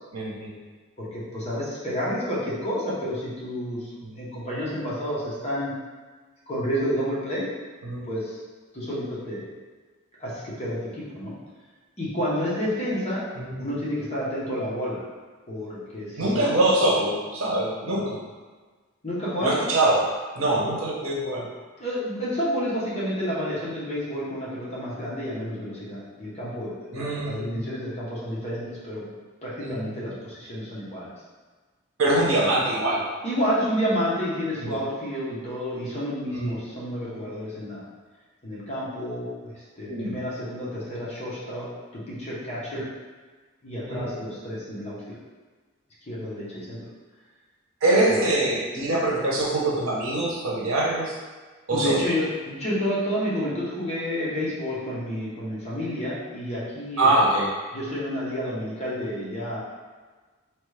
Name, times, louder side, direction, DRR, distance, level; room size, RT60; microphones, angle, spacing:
voice 1, 0.1-0.6 7.8-8.0 13.3-13.6 16.2-18.2 19.4-21.5 26.9-27.6 29.6-30.0 32.0-33.1 34.6-34.8 36.3-36.6 39.9-40.2 42.7-42.8 43.9-44.1 47.8-51.1 51.7-52.0 57.0-57.5, right 1 dB, 80° right, -4 dB, 0.7 m, -24 dB
voice 2, 1.0-3.9 4.2-5.7 6.5-7.5 8.1-8.4 8.7-9.5 10.2-11.3 12.0-13.2 13.6-15.0 15.5-16.6 19.0-19.6 21.8-29.1 29.4-31.1 33.2-37.8 38.4-41.7 41.9-42.8 43.6-45.2 46.1-46.8 48.1-48.2 51.7-57.1 57.7-59.6, equal, 30° left, -8 dB, 0.8 m, -30 dB
3.0 x 2.3 x 3.2 m, 1.4 s
head